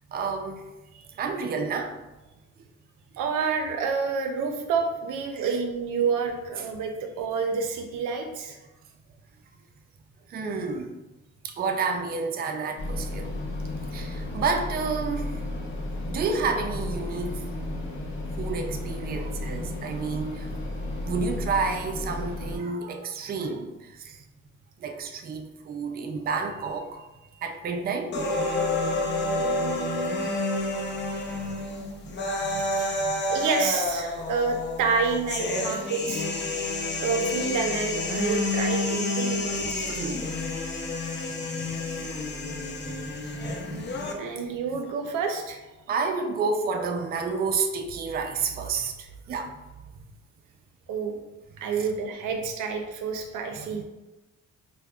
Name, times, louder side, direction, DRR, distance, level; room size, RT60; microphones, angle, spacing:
voice 1, 0.1-0.7 1.2-2.1 5.3-5.5 10.3-11.0 11.4-13.3 13.9-15.4 16.1-17.5 18.4-20.5 21.0-24.2 24.8-27.1 27.4-28.2 31.4-31.5 32.0-32.2 32.4-33.2 39.5-40.3 41.5-42.2 42.7-44.8 45.9-49.6 51.7-51.9 53.6-53.8, right 4 dB, 30° right, 4 dB, 0.4 m, -31 dB
voice 2, 3.2-8.6 29.4-30.2 31.1-31.4 32.6-33.0 33.3-36.3 36.9-39.9 44.2-45.6 50.9-51.2 51.6-53.8, right 5 dB, 85° right, 5 dB, 0.5 m, -29 dB
Turbine Room, 12.8-22.6, left 1 dB, 65° left, 0.8 m, -33 dB
sound 1, 28.1-44.1, left 2 dB, 35° left, 0.6 m, -29 dB
5.1 x 2.1 x 2.3 m, 1.0 s
cardioid pair, 90°, 30 cm